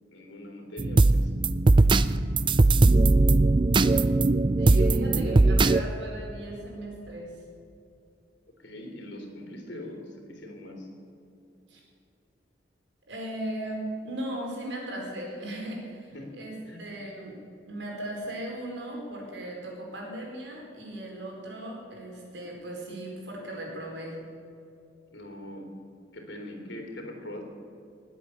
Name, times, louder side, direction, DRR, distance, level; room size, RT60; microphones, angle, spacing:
voice 1, 0.1-1.3 1.8-1.9 4.7-5.5 8.6-10.9 16.1-16.3 16.7-16.8 25.1-25.7 26.1-27.4, left 1 dB, 80° left, 1 dB, 3.2 m, -42 dB
sound 1, 0.8-5.8, right 2 dB, 25° right, 0.4 m, -20 dB
voice 2, 4.6-7.3 11.7-11.8 13.1-17.4 17.7-24.2, right 1 dB, 85° right, -1 dB, 4.6 m, -37 dB
20.0 x 8.3 x 7.0 m, 2.7 s
head